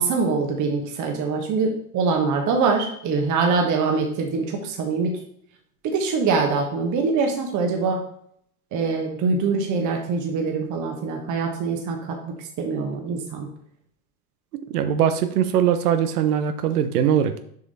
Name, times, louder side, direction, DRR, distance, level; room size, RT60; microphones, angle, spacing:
voice 1, 0.0-5.2 5.8-8.0 8.7-13.5, right 4 dB, 40° right, 2 dB, 1.3 m, -24 dB
voice 2, 14.7-17.4, right 9 dB, 75° right, 9 dB, 0.8 m, -21 dB
6.8 x 5.0 x 4.1 m, 0.67 s
hypercardioid pair, 90°, 46 cm